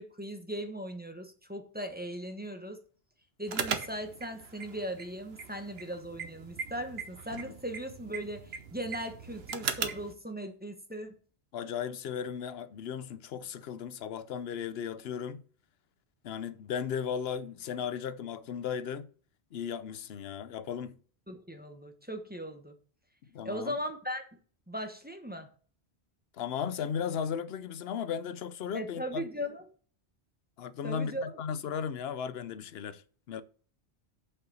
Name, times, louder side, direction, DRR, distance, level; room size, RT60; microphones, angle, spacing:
voice 1, 0.0-2.8 3.4-11.1 21.3-22.7 23.4-24.4 24.7-25.5 28.7-29.6 30.8-31.3, equal, 10° right, 1.1 m, -38 dB
sound 1, 3.5-10.1, right 6 dB, 70° right, 1.1 m, -39 dB
voice 2, 11.5-15.4 16.2-19.1 19.5-21.0 23.3-23.7 26.4-29.2 30.6-33.0 33.3-33.4, left 7 dB, 70° left, 0.9 m, -36 dB
6.7 x 5.8 x 6.2 m
omnidirectional pair, 1.1 m